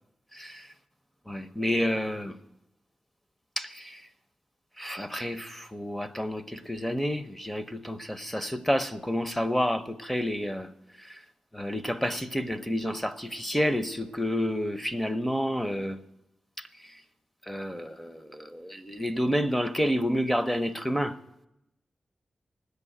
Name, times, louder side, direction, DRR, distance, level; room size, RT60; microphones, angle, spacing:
voice 1, 1.3-2.4 3.6-4.0 4.8-10.7 11.5-16.0 17.5-21.2, equal, 5° left, 0.7 m, -29 dB
10.5 x 8.2 x 9.9 m
wide cardioid pair, 110°, 2 cm